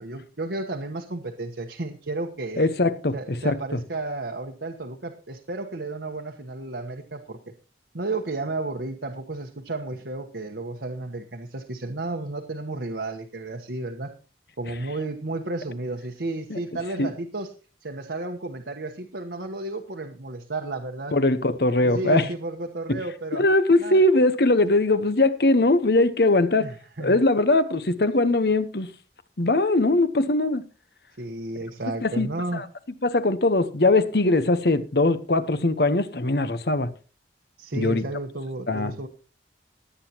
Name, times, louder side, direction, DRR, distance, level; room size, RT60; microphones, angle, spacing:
voice 1, 0.0-2.7 3.1-7.4 7.9-14.1 14.6-17.5 17.8-21.2 21.8-23.4 23.8-24.0 26.6-27.2 31.2-32.6 37.6-39.1, right 2 dB, 75° right, 1.2 m, -32 dB
voice 2, 2.6-3.8 16.5-16.6 17.0-17.1 21.1-22.3 22.9-23.0 23.3-26.7 27.0-28.9 29.4-30.6 32.0-32.6 33.0-36.9 37.7-38.0 38.7-38.9, left 2 dB, 60° left, 1.0 m, -21 dB
18.5 x 9.2 x 3.0 m
head